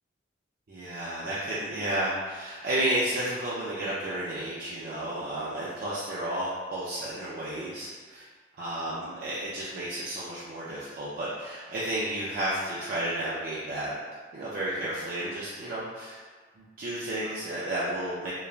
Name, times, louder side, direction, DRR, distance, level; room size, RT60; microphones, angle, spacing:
voice 1, 0.7-8.2 8.6-13.9 14.3-16.2 16.6-18.3, right 1 dB, 50° right, -9 dB, 0.4 m, -32 dB
3.0 x 2.2 x 2.4 m, 1.5 s
head